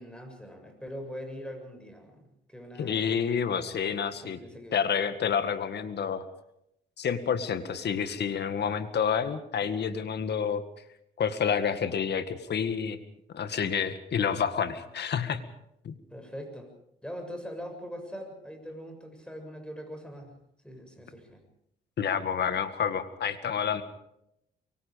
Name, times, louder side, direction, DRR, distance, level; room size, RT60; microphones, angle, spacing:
voice 1, 0.0-3.1 4.1-4.8 16.1-16.7 17.0-20.4 20.6-21.4, equal, 5° left, 5 dB, 7.3 m, -42 dB
voice 2, 2.8-4.4 4.7-6.2 7.0-10.6 11.2-13.0 13.3-15.4 15.8-15.9 22.0-23.8, left 7 dB, 55° left, 11 dB, 1.9 m, -29 dB
24.5 x 23.5 x 5.2 m, 0.80 s
cardioid pair, 90°, 20 cm